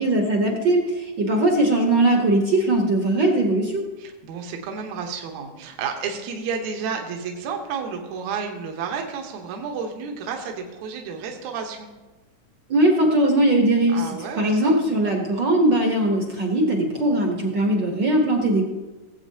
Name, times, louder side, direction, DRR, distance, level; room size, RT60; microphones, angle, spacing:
voice 1, 0.0-3.8 12.7-14.1 14.4-18.6, right 1 dB, 55° right, 2 dB, 1.3 m, -20 dB
voice 2, 4.0-11.9 13.9-14.8, right 6 dB, 75° right, 3 dB, 2.3 m, -31 dB
18.0 x 8.1 x 2.8 m, 1.2 s
omnidirectional pair, 3.4 m